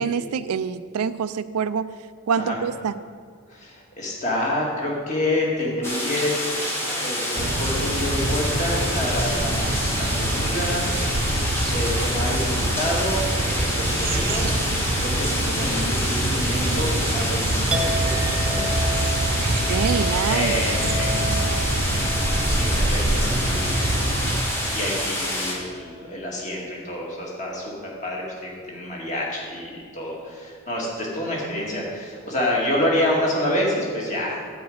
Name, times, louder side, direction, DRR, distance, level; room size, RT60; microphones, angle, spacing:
voice 1, 0.0-1.9 2.3-2.9 19.5-20.6, right 6 dB, 85° right, 14 dB, 0.4 m, -26 dB
voice 2, 3.5-6.3 6.9-11.2 11.6-14.5 15.0-18.8 20.3-21.5 21.8-23.7 24.1-24.2 24.5-34.4, left 1 dB, 30° left, -3 dB, 2.1 m, -28 dB
sound 1, 5.8-25.5, left 1 dB, 10° left, 1.3 m, -27 dB
sound 2, 7.4-24.4, right 1 dB, 40° right, 0.7 m, -25 dB
Chink clink, 17.7-25.4 25.7-26.4, equal, 5° right, 0.5 m, -33 dB
9.5 x 5.2 x 7.9 m, 2.1 s
head